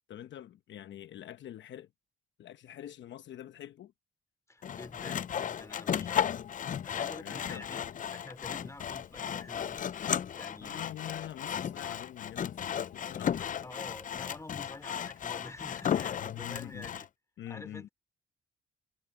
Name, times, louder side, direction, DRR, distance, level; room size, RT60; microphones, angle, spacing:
voice 1, 0.1-1.9 2.4-3.9 7.1-7.7 10.6-13.6 16.2-16.9 17.4-17.9, left 11 dB, 65° left, 0.9 m, -45 dB
voice 2, 4.5-6.2 6.8-7.8 8.1-9.9 10.3-10.9 13.6-17.1 17.5-17.9, left 2 dB, 15° left, 2.8 m, -48 dB
Sawing, 4.6-17.1, left 9 dB, 40° left, 0.5 m, -35 dB
cardioid pair, 90°, 20 cm